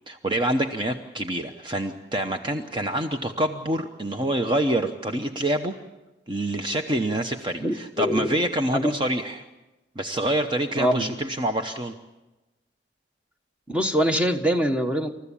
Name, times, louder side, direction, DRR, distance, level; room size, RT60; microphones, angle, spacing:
voice 1, 0.1-5.7 6.3-9.5 10.0-11.9, right 1 dB, 25° right, 5 dB, 0.9 m, -26 dB
voice 2, 7.6-8.3 8.7-8.9 10.8-11.0 13.7-15.1, equal, 5° right, 5 dB, 1.4 m, -23 dB
27.5 x 14.0 x 8.5 m, 1.1 s
head